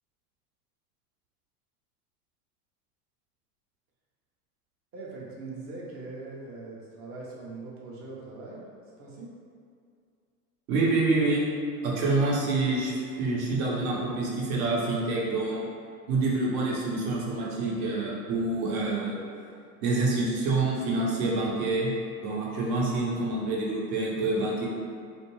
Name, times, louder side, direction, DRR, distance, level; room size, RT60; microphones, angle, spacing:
voice 1, 4.9-8.7 9.0-9.3, right 3 dB, 30° right, -4 dB, 0.6 m, -41 dB
voice 2, 10.7-11.5 11.8-15.6 16.1-19.2 19.8-21.9 22.2-24.7, right 3 dB, 60° right, -4 dB, 0.9 m, -27 dB
2.5 x 2.2 x 3.0 m, 2.3 s
hypercardioid pair, 105°, 46 cm